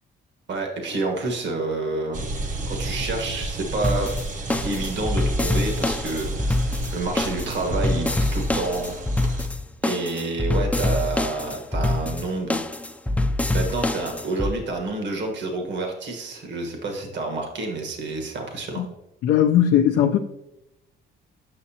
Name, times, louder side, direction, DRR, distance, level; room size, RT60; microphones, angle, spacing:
voice 1, 0.5-2.2 2.7-4.2 4.6-9.0 9.8-12.6 13.5-18.8, right 3 dB, 65° right, 1.4 m, -29 dB
sound 1, 2.1-9.5, right 2 dB, 40° right, 0.8 m, -32 dB
sound 2, 3.8-14.5, left 2 dB, 5° left, 0.4 m, -25 dB
voice 2, 19.2-20.2, left 10 dB, 75° left, 0.5 m, -18 dB
7.6 x 6.1 x 2.8 m
cardioid pair, 90°, 20 cm